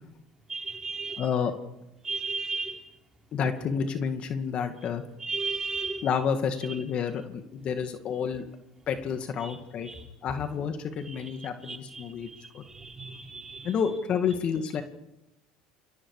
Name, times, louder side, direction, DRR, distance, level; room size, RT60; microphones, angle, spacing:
voice 1, 0.5-1.3 2.0-2.8 5.2-6.1 6.7-6.8 9.4-9.6 9.8-10.0 11.0-13.8, right 4 dB, 20° right, 2 dB, 4.4 m, -35 dB
voice 2, 1.2-1.5 3.3-5.0 6.0-8.4 8.9-9.9 10.2-12.3 12.5-12.6 13.6-14.8, left 7 dB, 45° left, 7 dB, 2.2 m, -29 dB
29.0 x 22.5 x 5.0 m, 0.92 s
supercardioid pair, 105°, 3 cm